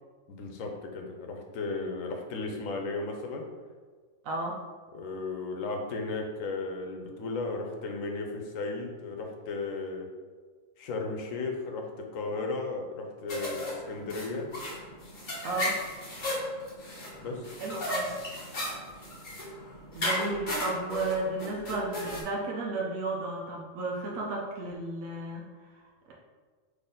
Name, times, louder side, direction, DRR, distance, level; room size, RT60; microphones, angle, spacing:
voice 1, 0.3-3.4 4.9-10.1 10.8-14.5 17.2-17.6, left 3 dB, 85° left, 3 dB, 1.1 m, -35 dB
voice 2, 4.2-4.6 15.4-15.8 17.6-18.1 19.9-25.4, right 2 dB, 90° right, -3 dB, 1.1 m, -33 dB
sound 1, 13.3-22.2, left 1 dB, 40° left, 1.2 m, -35 dB
4.1 x 3.2 x 3.7 m, 1.5 s
omnidirectional pair, 1.4 m